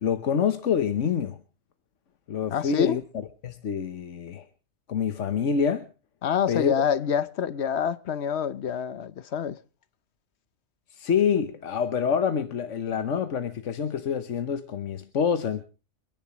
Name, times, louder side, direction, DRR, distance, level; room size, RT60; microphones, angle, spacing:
voice 1, 0.0-1.4 2.3-3.0 3.4-4.5 4.9-5.9 6.5-6.7 10.9-15.6, left 7 dB, 90° left, 1.4 m, -26 dB
voice 2, 2.5-3.0 6.2-9.6, left 8 dB, 65° left, 1.1 m, -26 dB
30.0 x 10.5 x 3.1 m
omnidirectional pair, 1.2 m